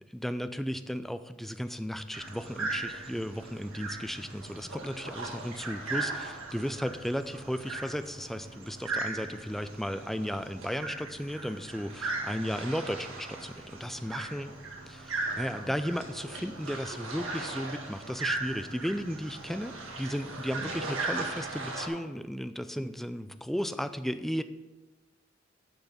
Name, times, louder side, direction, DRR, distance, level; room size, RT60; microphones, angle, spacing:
voice 1, 0.1-14.5 14.9-24.4, equal, ahead, 10 dB, 0.4 m, -35 dB
sound 1, 2.1-21.9, right 3 dB, 85° right, 1.8 m, -38 dB
10.5 x 6.0 x 5.5 m, 1.1 s
head